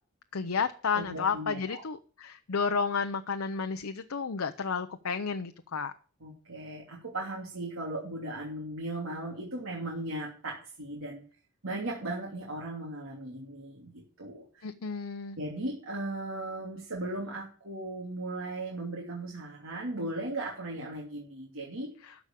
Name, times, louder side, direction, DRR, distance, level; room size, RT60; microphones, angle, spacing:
voice 1, 0.3-5.9 14.6-15.4 22.0-22.1, left 5 dB, 90° left, 8 dB, 0.7 m, -32 dB
voice 2, 0.9-1.8 6.2-11.2 11.6-14.4 15.4-21.9, right 2 dB, 85° right, -3 dB, 2.9 m, -37 dB
13.0 x 5.1 x 8.5 m, 0.41 s
head